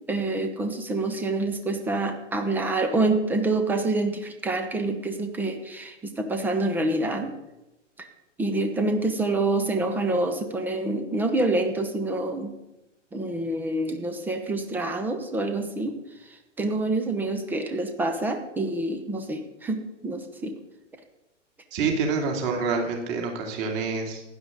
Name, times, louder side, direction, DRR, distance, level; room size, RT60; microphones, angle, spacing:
voice 1, 0.1-7.3 8.4-12.5 13.1-15.9 16.6-20.5, right 2 dB, 5° right, 6 dB, 0.6 m, -27 dB
voice 2, 21.7-24.2, right 4 dB, 30° right, 2 dB, 2.8 m, -27 dB
16.0 x 11.0 x 3.8 m, 0.95 s
figure-of-eight pair, 115°, 37 cm